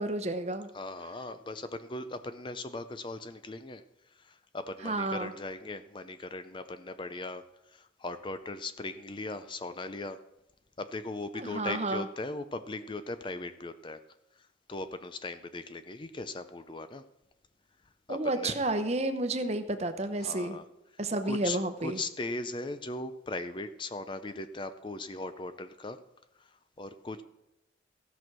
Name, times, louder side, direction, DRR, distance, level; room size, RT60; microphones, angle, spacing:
voice 1, 0.0-0.7 4.8-5.3 11.3-12.1 18.1-20.6 21.0-22.0, right 2 dB, 35° right, 8 dB, 0.9 m, -31 dB
voice 2, 0.7-3.8 4.1-7.4 7.7-10.2 10.8-14.0 14.4-17.0 18.1-18.6 20.2-20.6 21.2-26.0 26.4-27.2, left 2 dB, 25° left, 11 dB, 0.5 m, -39 dB
15.5 x 6.2 x 6.0 m, 0.93 s
head